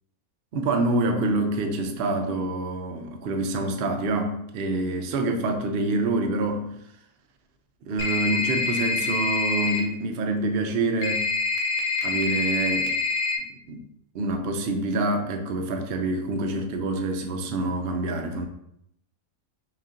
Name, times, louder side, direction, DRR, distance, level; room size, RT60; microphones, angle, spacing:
voice 1, 0.5-6.7 7.8-11.3 12.0-13.0 13.7-13.8 14.1-18.5, right 2 dB, 75° right, 4 dB, 0.5 m, -26 dB
sound 1, 8.0-9.8 11.0-13.4, left 3 dB, 75° left, 1.1 m, -26 dB
6.0 x 2.4 x 2.6 m, 0.76 s
omnidirectional pair, 1.6 m